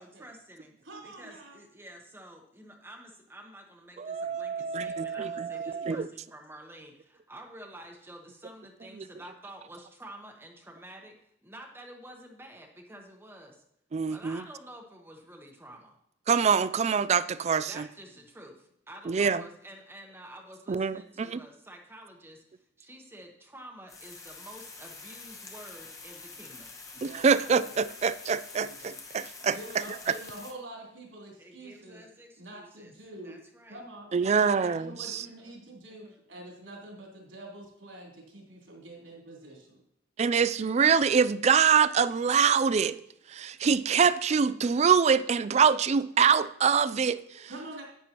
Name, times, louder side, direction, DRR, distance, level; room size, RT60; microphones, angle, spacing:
voice 1, 0.0-0.7 1.0-13.6 14.1-16.0 17.7-26.7 31.4-32.9 33.2-33.8 34.2-34.7 35.1-35.6 35.9-36.2, right 1 dB, 10° right, 1.0 m, -49 dB
voice 2, 0.8-1.6 5.7-6.1 27.0-27.9 28.6-29.0 29.5-32.0 32.4-33.4 33.7-34.1 34.3-39.8 47.5-47.8, right 1 dB, 80° right, 3.6 m, -46 dB
voice 3, 4.0-6.1 13.9-14.4 16.3-17.9 19.1-19.4 20.7-21.4 27.0-29.6 34.1-35.2 40.2-43.0 43.3-47.5, right 6 dB, 35° right, 0.3 m, -25 dB
sound 1, 23.9-30.5, left 4 dB, 15° left, 1.0 m, -46 dB
11.0 x 9.3 x 2.9 m
head